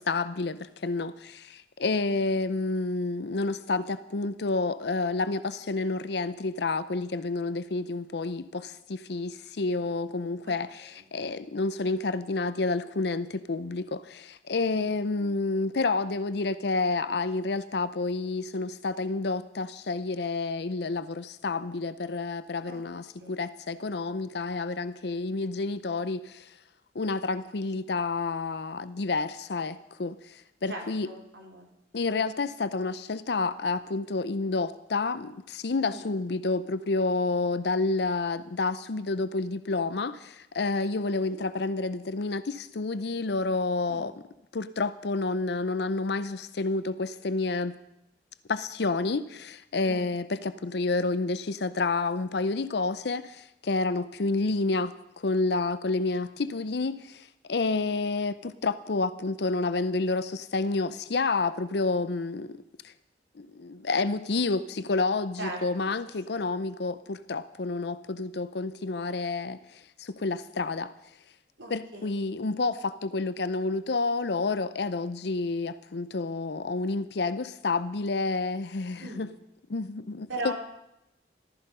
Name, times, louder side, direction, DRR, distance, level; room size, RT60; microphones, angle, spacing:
voice 1, 0.0-26.6 26.9-31.1 31.9-44.1 44.5-47.7 48.5-62.9 63.4-70.9 71.7-79.3 79.7-80.5, left 3 dB, 60° left, 14 dB, 0.6 m, -29 dB
voice 2, 2.1-2.4 10.4-10.5 14.7-14.9 22.6-22.8 23.2-23.5 27.7-27.9 30.7-31.7 35.8-36.1 41.1-41.4 43.9-44.1 49.8-50.1 56.5-56.6 65.4-65.9 71.6-72.2 79.0-79.3 80.3-80.5, right 2 dB, 80° right, 0 dB, 3.4 m, -40 dB
14.5 x 13.5 x 5.5 m, 0.86 s
head